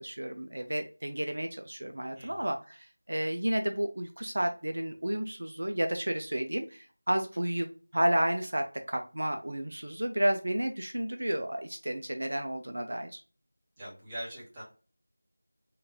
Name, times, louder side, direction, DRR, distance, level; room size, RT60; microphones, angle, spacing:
voice 1, 0.0-7.7 7.9-13.2, right 1 dB, 65° right, 6 dB, 0.5 m, -31 dB
voice 2, 2.1-2.5 13.8-14.6, equal, 15° right, -7 dB, 1.1 m, -42 dB
3.7 x 2.6 x 3.5 m, 0.36 s
figure-of-eight pair, 170°, 0 cm